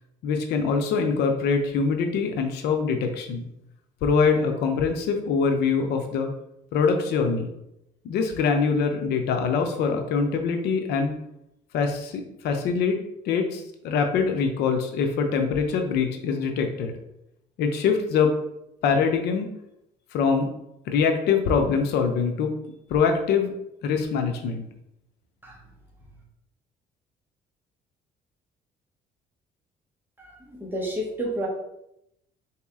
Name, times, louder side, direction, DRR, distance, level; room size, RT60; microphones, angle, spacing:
voice 1, 0.2-3.4 4.0-6.3 6.7-7.5 8.0-11.1 11.7-13.0 13.3-16.9 17.6-18.3 18.8-19.5 20.1-20.5 20.9-22.5 22.9-23.5 23.8-24.7, left 5 dB, 75° left, 5 dB, 0.6 m, -24 dB
voice 2, 30.2-31.5, right 1 dB, 10° right, -2 dB, 1.1 m, -31 dB
3.9 x 2.9 x 3.6 m, 0.82 s
cardioid pair, 110°, 17 cm